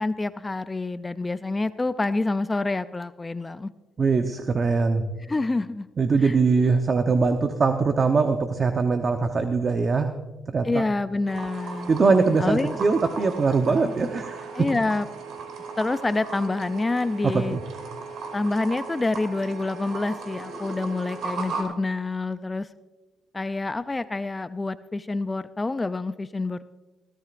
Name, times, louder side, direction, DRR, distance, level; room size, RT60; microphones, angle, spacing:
voice 1, 0.0-3.7 5.3-5.9 6.2-6.4 10.6-11.9 12.4-12.8 13.7-13.9 14.5-15.1 15.8-17.6 18.3-22.7 23.3-26.6, left 2 dB, 20° left, 13 dB, 0.4 m, -27 dB
voice 2, 4.0-5.0 6.0-10.1 10.5-10.8 11.9-14.7 17.2-17.6, right 4 dB, 40° right, 7 dB, 0.9 m, -22 dB
sound 1, 11.3-21.6, right 4 dB, 70° right, 2.6 m, -37 dB
20.5 x 13.5 x 2.5 m, 1.2 s
cardioid pair, 90°, 0 cm